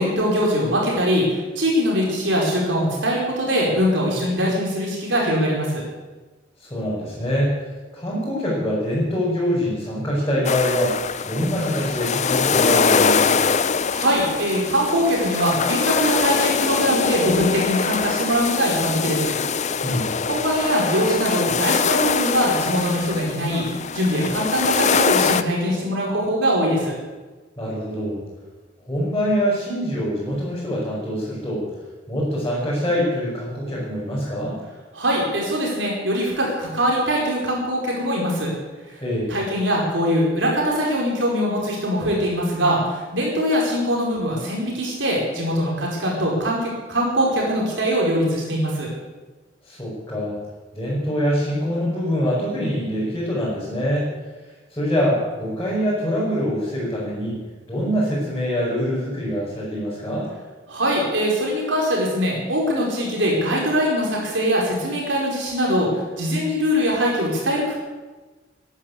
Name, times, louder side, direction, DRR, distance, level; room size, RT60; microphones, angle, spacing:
voice 1, 0.0-5.8 13.9-19.4 20.3-26.9 34.9-38.5 39.3-48.9 60.7-67.7, equal, 70° right, -2 dB, 4.8 m, -22 dB
voice 2, 6.6-7.6 7.9-13.5 19.8-20.1 27.6-28.2 28.9-31.6 32.1-34.6 39.0-39.3 49.7-50.4 50.7-54.1 54.7-57.4 57.7-60.3, equal, 15° left, -8 dB, 5.6 m, -24 dB
sound 1, 10.4-25.4, left 6 dB, 40° left, 0.6 m, -23 dB
13.5 x 11.0 x 8.5 m, 1.3 s
head